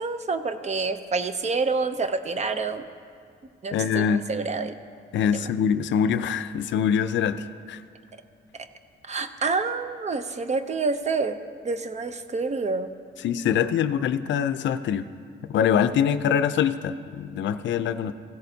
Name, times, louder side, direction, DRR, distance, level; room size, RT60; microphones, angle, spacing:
voice 1, 0.0-2.8 3.6-4.7 5.3-5.5 8.5-8.7 9.0-11.4 11.6-12.9, right 4 dB, 35° right, 10 dB, 0.6 m, -28 dB
voice 2, 3.7-4.2 5.1-7.8 13.2-15.1 15.5-18.1, left 8 dB, 70° left, 12 dB, 0.5 m, -24 dB
15.5 x 14.0 x 2.7 m, 2.2 s
cardioid pair, 90°, 20 cm